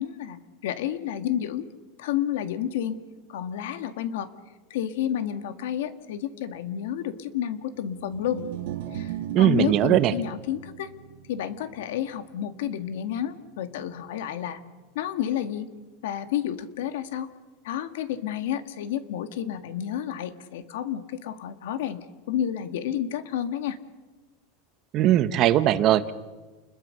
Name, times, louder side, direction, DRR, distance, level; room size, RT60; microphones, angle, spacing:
voice 1, 0.0-1.7 2.0-3.0 3.3-4.3 4.7-8.4 8.9-10.9 11.3-14.6 15.0-15.7 16.0-17.3 17.6-23.8, left 10 dB, 75° left, 10 dB, 1.9 m, -30 dB
sound 1, 8.0-14.4, right 11 dB, 60° right, 1.6 m, -39 dB
voice 2, 9.3-10.1 24.9-26.1, right 13 dB, 30° right, 13 dB, 0.9 m, -20 dB
29.5 x 21.5 x 6.6 m, 1.3 s
supercardioid pair, 170°, 0 cm